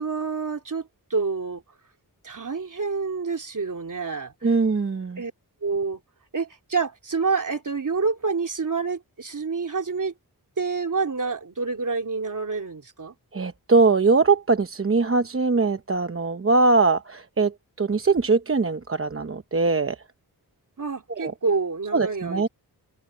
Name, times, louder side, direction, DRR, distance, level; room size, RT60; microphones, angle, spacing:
voice 1, 0.0-1.6 2.2-4.5 5.2-5.3 5.6-6.0 6.3-10.1 10.6-13.1 20.8-22.5, right 4 dB, 50° right, 3.1 m, -28 dB
voice 2, 4.4-5.2 13.3-20.0 21.2-21.3 21.9-22.5, right 3 dB, 35° right, 0.9 m, -21 dB
wide cardioid pair, 105°, 39 cm